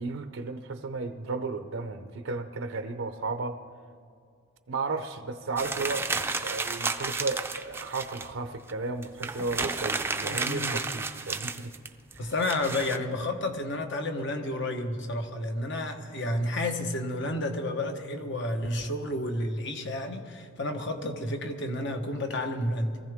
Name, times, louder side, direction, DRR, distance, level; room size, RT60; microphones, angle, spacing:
voice 1, 0.0-3.6 4.7-11.7 12.1-12.3, right 3 dB, 70° right, 8 dB, 0.6 m, -34 dB
sound 1, 5.6-8.3 8.7-8.8 9.0-13.0, right 3 dB, 10° right, 0.5 m, -32 dB
voice 2, 10.3-10.8 12.2-23.0, left 1 dB, 60° left, 5 dB, 1.2 m, -31 dB
23.0 x 15.0 x 3.6 m, 2.3 s
head